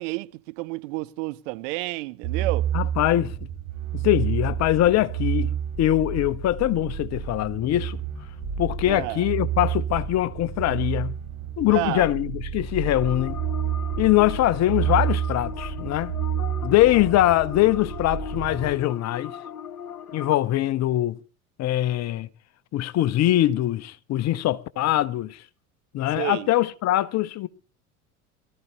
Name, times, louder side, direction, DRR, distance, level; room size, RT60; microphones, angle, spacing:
voice 1, 0.0-2.7 8.9-9.3 11.7-12.1 26.1-26.5, right 21 dB, 55° right, 0.9 m, -30 dB
sound 1, 2.2-18.7, right 9 dB, 35° right, 5.3 m, -30 dB
voice 2, 2.7-3.3 3.9-8.0 8.6-11.2 11.6-13.4 14.0-16.1 16.6-19.4 20.1-21.2 21.6-22.3 22.7-25.4 25.9-27.5, left 14 dB, 40° left, 0.9 m, -22 dB
sound 2, 13.0-20.3, left 8 dB, 85° left, 0.9 m, -38 dB
23.5 x 13.5 x 3.1 m
figure-of-eight pair, 75°, 43 cm